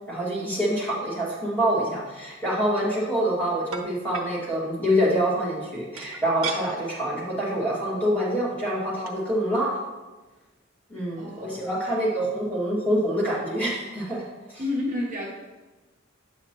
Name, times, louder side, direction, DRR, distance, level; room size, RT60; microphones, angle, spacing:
voice 1, 0.1-9.8 10.9-14.2 14.5-14.6, equal, 10° left, -8 dB, 2.1 m, -26 dB
sound 1, 2.7-2.9 3.7-4.3 6.0-6.6 7.1-7.3 7.6-7.8 8.8-8.9 9.1-9.2, right 6 dB, 85° right, 0.8 m, -35 dB
voice 2, 11.2-11.6 14.6-15.3, left 2 dB, 40° right, -3 dB, 0.8 m, -29 dB
7.8 x 5.7 x 3.0 m, 1.2 s
head